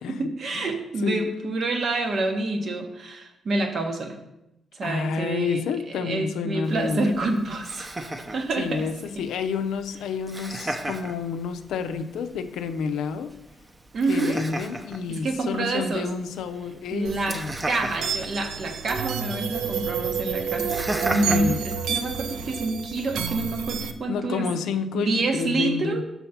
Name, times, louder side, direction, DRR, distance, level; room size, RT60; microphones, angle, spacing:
voice 1, 0.2-4.2 4.7-5.6 5.9-8.9 13.9-14.4 15.1-16.1 16.9-17.4 17.7-24.5 24.9-26.0, right 2 dB, 60° right, 4 dB, 1.1 m, -27 dB
voice 2, 1.0-1.3 4.8-7.3 8.6-13.3 14.1-17.5 21.3-21.6 24.1-26.0, left 6 dB, 85° left, 9 dB, 0.4 m, -29 dB
Laughter, 6.6-22.6, right 1 dB, 20° right, 0.7 m, -37 dB
sound 1, 17.0-23.9, right 7 dB, 80° right, 0.5 m, -30 dB
5.7 x 4.1 x 5.6 m, 0.91 s
cardioid pair, 75°, 0 cm